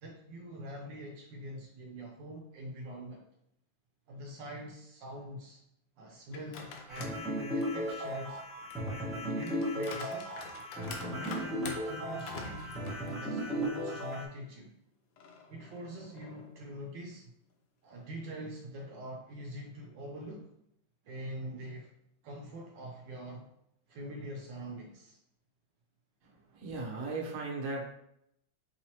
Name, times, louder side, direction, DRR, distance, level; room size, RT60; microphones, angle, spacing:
voice 1, 0.0-3.2 4.1-5.6 6.0-8.4 8.8-10.4 11.0-12.8 13.1-14.7 15.5-17.3 17.8-20.5 21.0-21.9 22.2-23.5 23.9-25.2, right 1 dB, 75° right, 0 dB, 1.2 m, -44 dB
sound 1, 6.3-7.2 7.6-13.7 14.1-14.2 15.2-16.6, left 4 dB, 85° left, 1.4 m, -47 dB
sound 2, 6.9-14.2, equal, ahead, 0.9 m, -36 dB
voice 2, 26.5-27.9, right 3 dB, 50° right, -2 dB, 1.1 m, -37 dB
5.4 x 3.0 x 2.8 m, 0.76 s
omnidirectional pair, 2.1 m